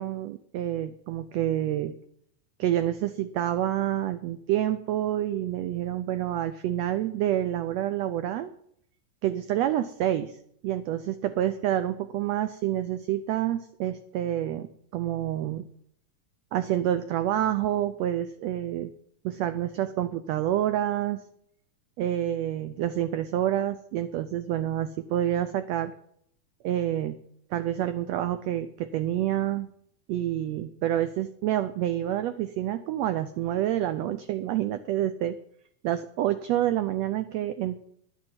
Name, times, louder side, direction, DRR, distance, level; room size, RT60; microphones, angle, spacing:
voice 1, 0.0-1.9 2.6-8.5 9.2-10.4 10.6-15.6 16.5-18.9 19.2-21.2 22.0-25.9 26.6-27.2 27.5-29.7 30.1-35.4 35.8-37.8, right 12 dB, 85° right, 11 dB, 1.5 m, -28 dB
11.0 x 7.4 x 7.8 m, 0.67 s
omnidirectional pair, 3.6 m